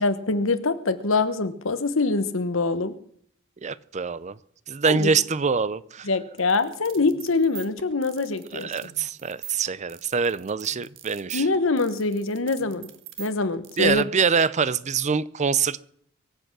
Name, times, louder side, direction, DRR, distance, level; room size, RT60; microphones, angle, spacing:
voice 1, 0.0-2.9 4.9-5.1 6.1-8.7 11.3-12.9 13.2-14.0, left 3 dB, 85° left, 1.2 m, -24 dB
voice 2, 3.6-4.4 4.7-6.1 8.5-11.5 13.8-15.8, right 5 dB, 35° right, 0.5 m, -24 dB
sound 1, 6.4-13.9, right 10 dB, 70° right, 1.5 m, -44 dB
23.5 x 8.0 x 6.1 m
head